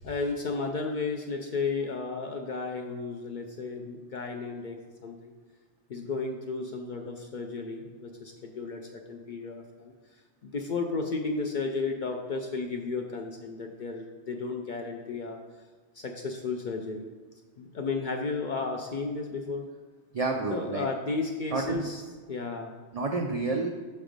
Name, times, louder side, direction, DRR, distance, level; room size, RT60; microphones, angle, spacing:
voice 1, 0.0-5.3 5.9-9.9 10.4-15.4 15.9-17.1 17.6-19.7 20.5-22.7, left 4 dB, 60° left, 3 dB, 0.5 m, -33 dB
voice 2, 20.1-20.9 21.5-21.9 22.9-23.7, right 3 dB, 80° right, 2 dB, 0.3 m, -29 dB
6.0 x 3.2 x 5.0 m, 1.5 s
omnidirectional pair, 1.2 m